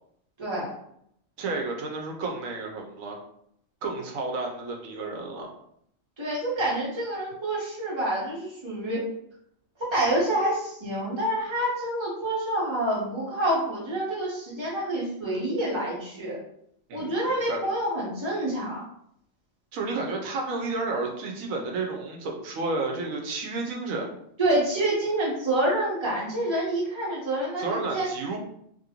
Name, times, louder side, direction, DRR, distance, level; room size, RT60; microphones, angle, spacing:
voice 1, 0.4-0.7 6.2-9.0 9.8-16.4 16.9-18.8 24.4-28.1, right 1 dB, 20° right, -6 dB, 1.0 m, -27 dB
voice 2, 1.4-3.2 3.8-5.5 16.9-17.6 19.7-24.1 27.6-28.4, right 3 dB, 90° right, 1 dB, 1.1 m, -31 dB
3.0 x 2.5 x 2.9 m, 0.71 s
omnidirectional pair, 1.4 m